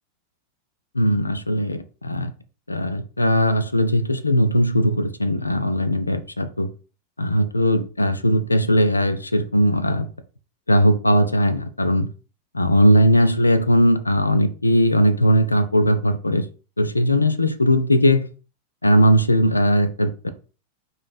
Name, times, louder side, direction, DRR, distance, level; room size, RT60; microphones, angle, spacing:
voice 1, 0.9-2.3 2.7-6.7 7.2-10.1 10.7-12.1 12.5-16.5 16.8-18.3 18.8-20.3, equal, 80° left, 11 dB, 0.5 m, -19 dB
5.2 x 3.9 x 2.3 m, 0.35 s
figure-of-eight pair, 90°, 0 cm